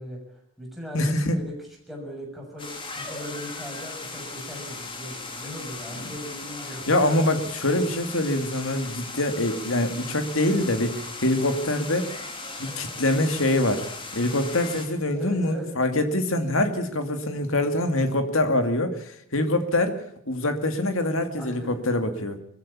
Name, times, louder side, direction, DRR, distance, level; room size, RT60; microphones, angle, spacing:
voice 1, 0.0-1.0 1.3-1.5 1.9-7.0 12.8-13.0 15.1-15.7 21.3-21.7, equal, ahead, -1 dB, 6.9 m, -39 dB
voice 2, 0.9-1.4 6.9-12.1 12.6-22.4, left 1 dB, 60° left, 7 dB, 2.5 m, -24 dB
sound 1, 2.6-14.9, left 3 dB, 25° left, 2.9 m, -38 dB
21.0 x 15.0 x 8.5 m, 0.71 s
head